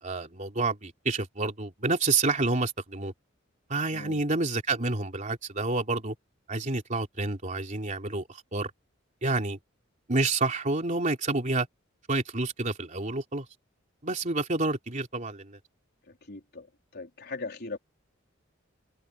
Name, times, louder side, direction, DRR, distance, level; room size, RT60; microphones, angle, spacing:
voice 1, 0.0-3.1 3.7-6.1 6.5-8.7 9.2-9.6 10.1-11.7 12.1-13.5 14.0-15.6, right 3 dB, 40° right, 3.3 m, -29 dB
voice 2, 3.9-4.2 16.1-16.7 16.9-17.8, left 3 dB, 55° left, 4.0 m, -39 dB
head